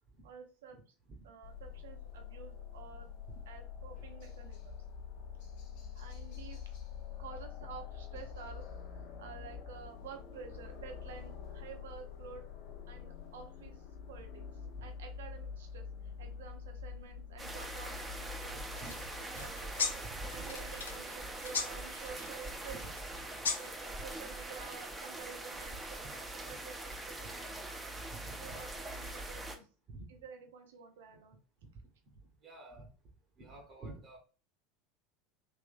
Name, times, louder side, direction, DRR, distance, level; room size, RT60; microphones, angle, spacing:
voice 1, 0.2-0.9 1.2-3.1 3.5-4.8 5.9-6.7 7.2-12.5 12.9-14.4 14.8-19.8 20.1-23.0 23.6-26.8 27.1-27.5 28.4-29.7 30.1-31.4, right 6 dB, 70° right, 5 dB, 0.6 m, -51 dB
sound 1, 1.4-21.0, left 7 dB, 60° left, 0.9 m, -46 dB
sound 2, 17.4-29.6, right 2 dB, 15° right, 0.7 m, -43 dB
sound 3, 18.8-23.9, left 5 dB, 80° left, 0.5 m, -40 dB
voice 2, 28.1-28.6 29.9-30.1 32.4-32.9 33.4-34.2, right 2 dB, 40° right, 0 dB, 1.1 m, -49 dB
3.6 x 3.1 x 2.5 m, 0.36 s
figure-of-eight pair, 80°, 0 cm